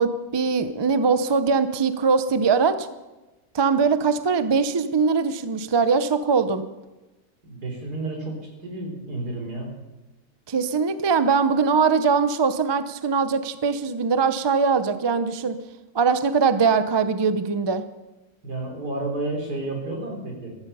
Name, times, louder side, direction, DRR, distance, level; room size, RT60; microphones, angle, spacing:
voice 1, 0.0-2.9 3.5-6.6 10.5-15.6 15.9-17.8, right 5 dB, 35° right, 11 dB, 0.4 m, -21 dB
voice 2, 7.4-9.7 18.4-20.6, right 2 dB, 90° right, 1 dB, 4.1 m, -31 dB
14.5 x 14.0 x 5.5 m, 1.1 s
omnidirectional pair, 1.6 m